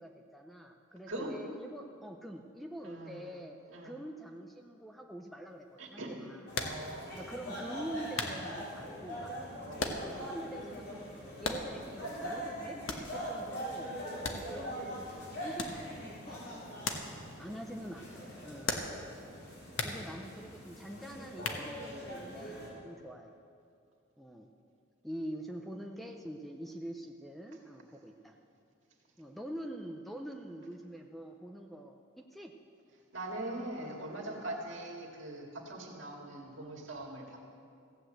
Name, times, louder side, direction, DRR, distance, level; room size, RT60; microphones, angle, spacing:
voice 1, 0.0-3.6 3.8-6.4 7.2-9.4 9.8-11.1 11.4-13.9 14.3-16.8 17.4-18.8 19.8-23.4 24.2-24.5 25.0-28.4 29.2-32.5 34.2-34.5, right 1 dB, ahead, 3 dB, 0.6 m, -45 dB
voice 2, 2.8-3.4 3.7-4.0 5.8-6.2 6.6-7.4 9.6-10.0 16.9-17.8 33.1-37.4, right 1 dB, 65° right, 0 dB, 2.2 m, -42 dB
sound 1, 6.5-6.9 7.5-7.6 8.2-8.4 9.8-10.2 10.5-10.6 11.4-11.9 12.9-13.2 14.2-14.8 15.6-15.9 16.8-17.1 17.4-17.5 18.7-19.1 19.8-20.0 21.4-22.0, left 3 dB, 80° left, 1.2 m, -36 dB
sound 2, 6.5-22.7, equal, 55° left, 3.9 m, -43 dB
15.5 x 8.1 x 7.9 m, 2.4 s
head